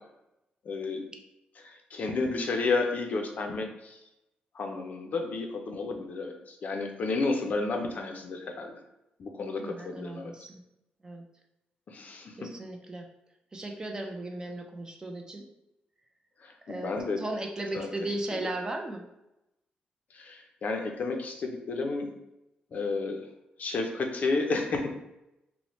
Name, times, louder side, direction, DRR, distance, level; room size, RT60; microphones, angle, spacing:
voice 1, 0.7-1.0 1.6-4.0 4.6-8.8 9.2-10.3 11.9-12.5 16.4-17.2 17.7-17.9 20.1-22.1 22.7-23.3 23.6-24.9, left 3 dB, 55° left, 4 dB, 0.4 m, -31 dB
voice 2, 9.6-10.6 11.0-11.2 12.4-13.1 13.5-15.5 16.7-19.0, right 2 dB, 20° right, 2 dB, 0.4 m, -36 dB
2.9 x 2.1 x 3.0 m, 0.89 s
cardioid pair, 100°, 3 cm